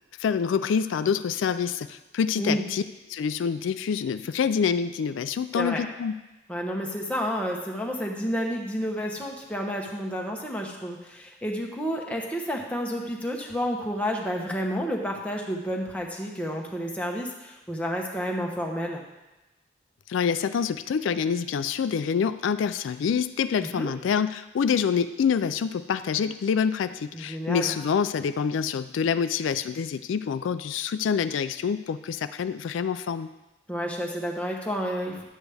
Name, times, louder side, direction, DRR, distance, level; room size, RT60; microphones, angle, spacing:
voice 1, 0.2-2.8 3.1-6.2 20.1-33.3, left 6 dB, 80° left, 12 dB, 0.3 m, -26 dB
voice 2, 6.5-19.0 23.6-23.9 27.1-27.7 33.7-35.2, equal, 5° left, 0 dB, 0.9 m, -30 dB
11.0 x 8.1 x 3.4 m, 1.0 s
head